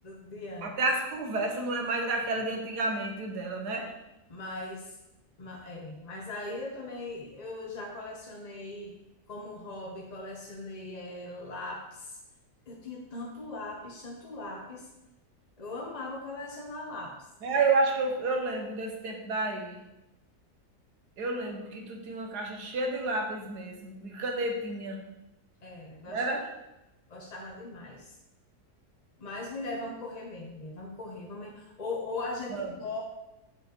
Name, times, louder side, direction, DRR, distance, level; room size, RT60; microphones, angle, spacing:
voice 1, 0.0-0.7 4.3-5.0 5.4-8.9 9.3-12.2 12.7-14.9 15.6-17.1 25.6-26.2 27.1-28.1 29.2-33.0, left 2 dB, 35° left, -1 dB, 0.7 m, -39 dB
voice 2, 0.6-3.9 17.4-19.8 21.2-25.0 26.1-26.5 32.5-32.7, right 3 dB, 70° right, 3 dB, 1.7 m, -30 dB
7.8 x 5.3 x 4.4 m, 0.94 s
omnidirectional pair, 1.8 m